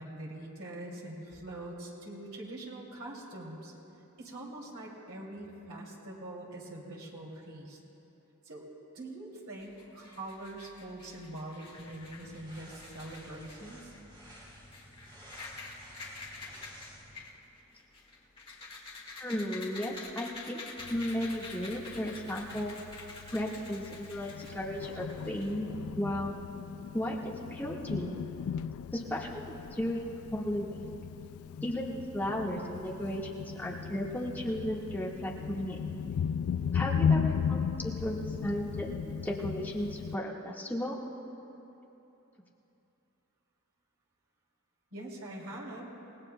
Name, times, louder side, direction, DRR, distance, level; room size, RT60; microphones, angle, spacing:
voice 1, 0.0-3.7 4.2-7.8 8.4-8.7 8.9-13.8 44.9-45.9, right 1 dB, 85° right, -3 dB, 2.7 m, -43 dB
sound 1, 9.6-25.9, left 3 dB, 25° left, 2.0 m, -48 dB
sound 2, 11.6-17.2, equal, 25° right, 3.1 m, -53 dB
voice 2, 19.2-20.6 20.9-22.7 23.3-25.7 26.0-26.3 26.9-28.1 28.9-30.9 31.6-35.9 36.7-41.0, equal, 10° left, -5 dB, 1.5 m, -35 dB
Thunder, 20.8-40.1, left 7 dB, 80° left, 0.3 m, -36 dB
28.5 x 18.0 x 2.2 m, 3.0 s
head